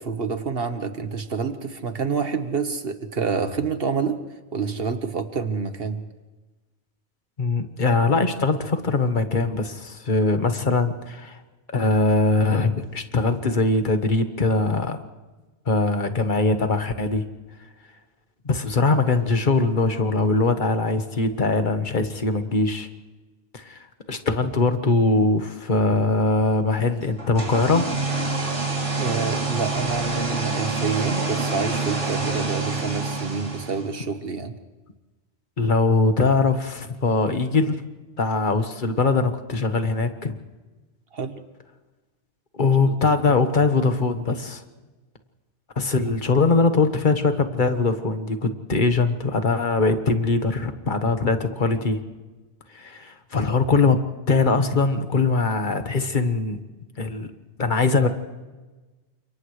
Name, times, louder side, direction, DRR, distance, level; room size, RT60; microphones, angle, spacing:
voice 1, 0.0-4.2 4.5-6.0 29.0-34.6 41.1-41.4 42.9-43.0, right 5 dB, 55° right, 8 dB, 1.5 m, -28 dB
voice 2, 7.4-11.4 11.7-15.0 15.7-17.2 18.4-22.9 23.5-27.9 35.6-37.8 38.2-40.4 42.6-44.6 45.8-52.0 52.7-54.0 54.3-56.6 57.0-57.3 57.6-58.1, left 3 dB, 45° left, 8 dB, 1.5 m, -21 dB
sound 1, 27.2-34.0, right 3 dB, 85° right, 3.5 m, -27 dB
30.0 x 27.0 x 3.3 m, 1.2 s
omnidirectional pair, 1.2 m